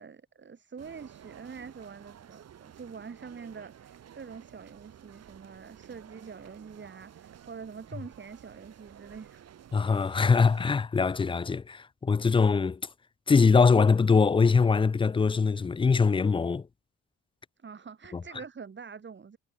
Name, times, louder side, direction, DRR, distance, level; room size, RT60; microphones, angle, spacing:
voice 1, 0.0-9.5 17.6-19.4, right 6 dB, 40° right, 4.3 m, -45 dB
sound 1, 0.8-10.7, right 9 dB, 55° right, 2.1 m, -52 dB
voice 2, 9.7-12.8 13.3-16.7 18.1-18.2, left 5 dB, 20° left, 0.4 m, -22 dB
cardioid pair, 90°, 30 cm